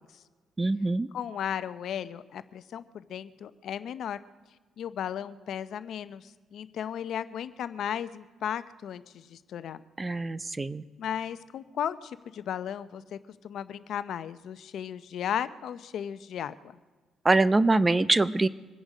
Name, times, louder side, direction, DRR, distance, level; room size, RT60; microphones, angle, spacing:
voice 1, 0.6-1.1 10.0-10.8 17.2-18.5, right 2 dB, 20° right, 16 dB, 0.6 m, -24 dB
voice 2, 1.1-4.2 4.8-9.8 11.0-13.2 13.4-16.8, left 9 dB, 70° left, 13 dB, 0.7 m, -35 dB
25.0 x 10.5 x 5.0 m, 1.3 s
cardioid pair, 90°, 0 cm